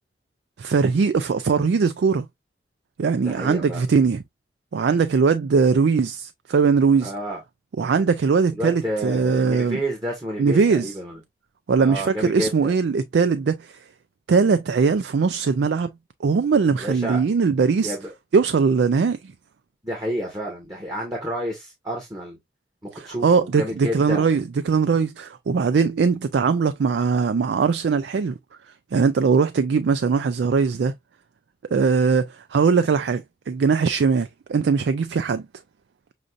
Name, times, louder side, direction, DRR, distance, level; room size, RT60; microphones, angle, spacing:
voice 1, 0.6-2.3 3.0-4.2 4.7-7.1 7.8-9.8 10.4-10.9 11.7-13.8 14.3-15.9 16.2-18.0 18.3-19.3 22.9-28.4 28.9-30.9 31.7-35.4, right 5 dB, 85° right, 0.4 m, -20 dB
voice 2, 3.2-3.8 7.0-7.4 8.5-11.2 11.8-12.7 16.8-17.2 17.8-18.1 19.8-22.4 22.8-24.3, equal, 20° right, 1.4 m, -30 dB
6.3 x 2.6 x 2.4 m
head